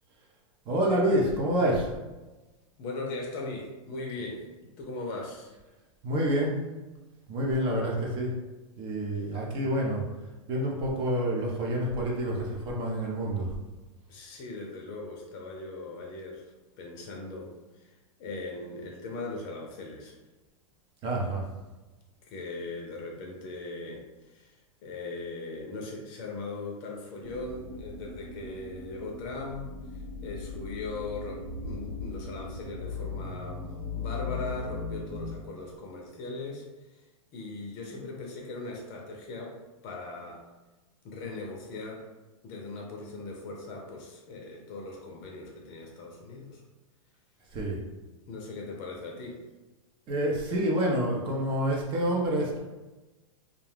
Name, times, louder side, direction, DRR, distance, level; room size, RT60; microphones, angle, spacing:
voice 1, 0.7-1.9 6.0-6.6 7.3-8.3 8.8-10.0 10.5-13.5 21.0-21.4 47.5-47.8 50.1-52.6, right 1 dB, 30° right, -2 dB, 0.6 m, -28 dB
voice 2, 2.8-4.5 4.8-5.5 14.1-20.1 22.2-37.1 37.3-39.6 39.8-40.5 41.0-42.1 42.4-46.6 48.3-49.4, left 3 dB, 45° left, 0 dB, 0.5 m, -39 dB
sound 1, 27.2-35.3, left 4 dB, 85° right, 0.7 m, -38 dB
2.4 x 2.2 x 3.3 m, 1.1 s
hypercardioid pair, 130°, 17 cm